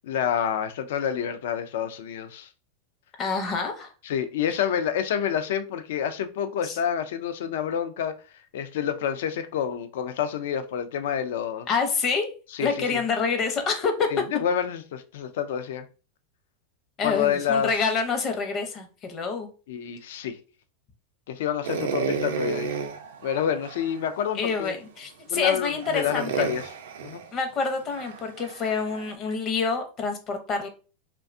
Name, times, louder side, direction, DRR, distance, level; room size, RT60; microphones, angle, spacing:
voice 1, 0.0-2.5 4.1-8.1 8.5-11.7 12.6-13.0 14.1-15.9 17.0-17.7 19.7-20.4 21.3-22.7 23.2-24.8 25.3-26.6 27.0-27.2, left 8 dB, 75° left, 0.3 m, -28 dB
voice 2, 3.2-3.9 6.6-6.8 11.7-12.3 12.6-14.1 17.0-19.5 24.3-26.5 27.3-30.7, left 5 dB, 35° left, 0.6 m, -27 dB
sound 1, 21.6-24.0 24.6-24.7 25.3-29.1, right 6 dB, 75° right, 0.4 m, -32 dB
2.6 x 2.2 x 2.5 m
hypercardioid pair, 120°, 0 cm